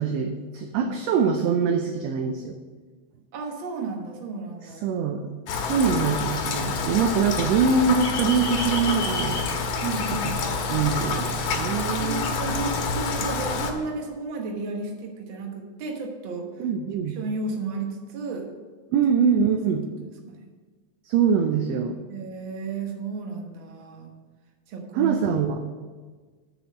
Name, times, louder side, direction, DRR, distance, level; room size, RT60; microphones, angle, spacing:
voice 1, 0.0-2.6 4.8-5.3 5.7-9.4 10.2-10.3 10.7-12.3 16.6-17.2 18.9-19.9 21.1-22.0 24.9-25.6, right 6 dB, 75° right, 6 dB, 1.6 m, -23 dB
voice 2, 3.3-4.9 9.8-10.3 11.2-11.3 12.0-16.5 17.1-18.5 19.4-19.5 20.3-20.5 22.1-24.1 24.7-25.2, right 4 dB, 55° right, 2 dB, 1.6 m, -33 dB
Rain, 5.5-13.7, left 4 dB, 80° left, 2.4 m, -28 dB
sound 1, 6.1-12.4, left 2 dB, 60° left, 0.9 m, -38 dB
6.8 x 6.3 x 7.5 m, 1.4 s
omnidirectional pair, 3.4 m